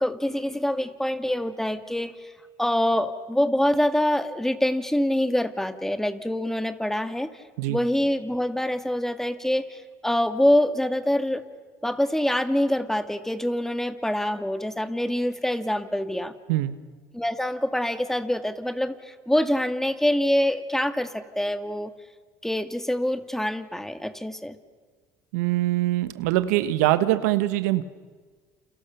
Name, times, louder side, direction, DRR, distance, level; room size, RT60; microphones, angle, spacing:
voice 1, 0.0-2.3 2.6-7.3 7.7-11.4 11.8-16.3 17.1-21.9 22.4-24.6, left 1 dB, 5° left, 9 dB, 2.0 m, -25 dB
voice 2, 25.3-27.8, right 15 dB, 85° right, 12 dB, 1.4 m, -23 dB
29.5 x 28.5 x 6.9 m, 1.5 s
supercardioid pair, 80°, 9 cm